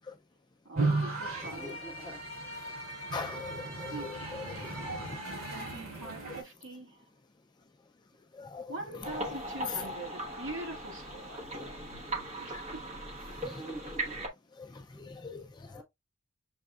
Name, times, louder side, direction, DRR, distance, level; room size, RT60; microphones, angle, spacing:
voice 1, 0.6-1.8 3.9-5.0 5.5-7.0 8.7-11.9 12.3-12.8, right 2 dB, 60° right, 1.5 m, -44 dB
sound 1, 0.8-6.4, right 2 dB, 90° right, 3.1 m, -35 dB
voice 2, 1.5-2.3 13.4-14.2 15.6-15.8, right 2 dB, 10° right, 1.4 m, -46 dB
voice 3, 3.1-4.1 4.5-5.2 8.4-8.7 12.5-12.6 13.4-13.6 14.6-14.7 15.0-15.4, left 4 dB, 20° left, 0.4 m, -41 dB
sound 2, 9.0-14.3, right 1 dB, 30° right, 1.1 m, -39 dB
6.4 x 3.4 x 2.3 m
head